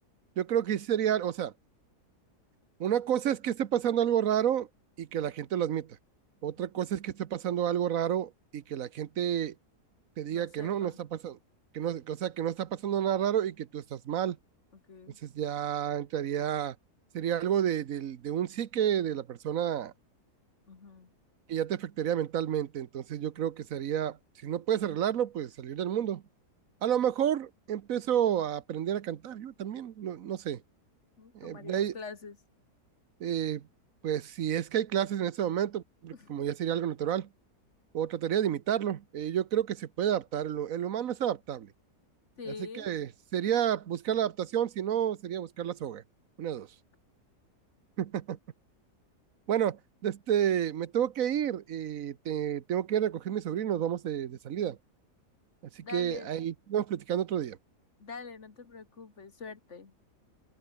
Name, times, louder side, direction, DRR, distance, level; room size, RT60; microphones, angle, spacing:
voice 1, 0.4-1.5 2.8-4.7 5.0-5.9 6.4-9.5 10.2-11.4 11.7-14.4 15.2-16.7 17.1-19.9 21.5-24.2 24.4-26.2 26.8-30.6 31.3-31.9 33.2-33.6 34.0-37.3 37.9-41.7 42.7-46.0 46.4-46.7 48.0-48.4 49.5-54.8 55.8-57.6, right 10 dB, 60° right, 1.3 m, -30 dB
voice 2, 10.3-11.0 14.7-15.2 20.7-21.1 31.2-32.4 36.1-36.5 42.4-42.9 55.8-56.3 58.0-59.9, left 5 dB, 45° left, 2.3 m, -45 dB
open air
omnidirectional pair, 1.7 m